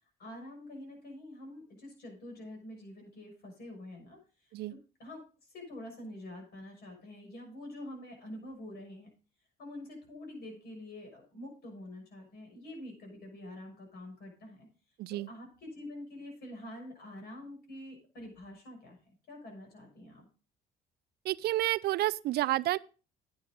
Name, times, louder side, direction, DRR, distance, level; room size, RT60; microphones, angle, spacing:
voice 1, 0.2-4.2 4.4-5.2 5.5-9.1 9.6-14.7 15.1-20.3, left 1 dB, 60° left, 6.5 m, -46 dB
voice 2, 21.2-22.8, right 15 dB, 60° right, 0.4 m, -30 dB
10.0 x 9.6 x 3.8 m
supercardioid pair, 80°, 18 cm